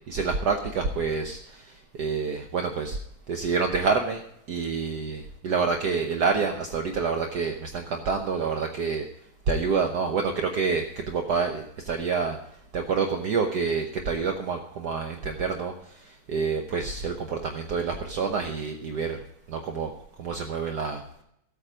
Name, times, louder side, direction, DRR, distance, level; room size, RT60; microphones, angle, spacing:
voice 1, 0.1-1.6 2.0-3.0 3.3-4.2 4.5-9.1 9.5-12.4 12.7-15.7 16.3-19.2 19.5-19.9 20.2-21.0, right 5 dB, 60° right, 4 dB, 1.3 m, -27 dB
15.0 x 8.5 x 5.1 m, 0.75 s
omnidirectional pair, 2.2 m